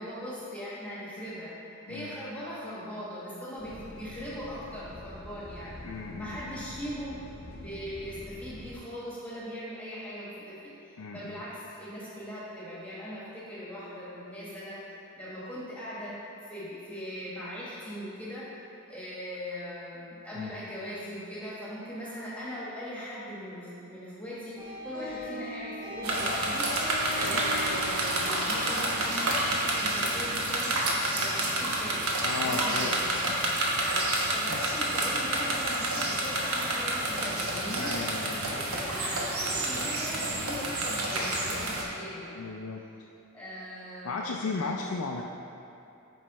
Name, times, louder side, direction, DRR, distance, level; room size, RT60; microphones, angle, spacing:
voice 1, 0.0-1.5 1.9-5.8 6.2-7.2 7.5-16.2 16.4-18.6 18.9-26.7 27.1-30.8 31.1-32.0 32.4-33.0 33.8-37.9 38.3-42.6 43.3-44.5, equal, 5° left, -8 dB, 1.3 m, -40 dB
sound 1, 3.6-8.8, left 1 dB, 45° left, 0.6 m, -46 dB
voice 2, 5.8-6.6 11.0-11.4 20.3-20.5 32.2-33.0 34.5-34.6 37.7-38.7 42.4-42.8 44.0-45.2, left 4 dB, 85° left, -1 dB, 0.5 m, -35 dB
sound 2, 24.6-30.1, left 1 dB, 15° right, 1.5 m, -40 dB
sound 3, 26.0-41.9, right 1 dB, 80° right, 1.1 m, -29 dB
8.8 x 5.6 x 3.1 m, 2.8 s
head